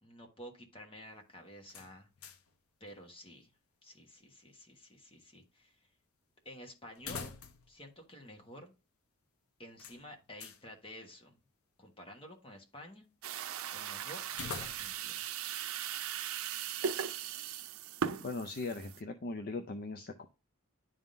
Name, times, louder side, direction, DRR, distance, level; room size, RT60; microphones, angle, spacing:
voice 1, 0.0-2.1 2.8-3.5 3.8-5.9 6.4-7.4 7.7-8.7 9.6-11.4 11.8-13.1 13.7-15.3, equal, 25° left, 3 dB, 1.3 m, -51 dB
sound 1, 1.7-2.6 2.9-3.0 6.9-7.8 8.1-8.2 9.8-10.6 14.3-15.1, left 5 dB, 90° left, 0.7 m, -45 dB
sound 2, 13.2-19.0, right 8 dB, 80° right, 0.5 m, -38 dB
voice 2, 18.1-20.3, left 3 dB, 45° left, 6 dB, 0.5 m, -39 dB
10.5 x 3.6 x 2.6 m, 0.29 s
head